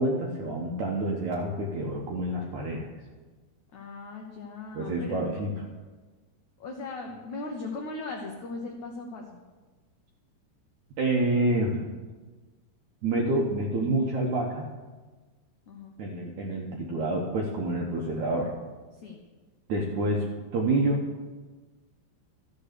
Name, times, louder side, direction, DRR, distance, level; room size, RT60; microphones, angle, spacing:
voice 1, 0.0-2.9 4.7-5.5 11.0-11.8 13.0-14.6 16.0-18.5 19.7-20.3 20.5-21.0, right 2 dB, 70° right, -1 dB, 1.8 m, -27 dB
voice 2, 3.7-5.2 6.6-9.4 15.7-15.9 18.9-19.2, left 3 dB, 80° left, 1 dB, 1.7 m, -38 dB
14.0 x 6.9 x 6.7 m, 1.3 s
omnidirectional pair, 4.9 m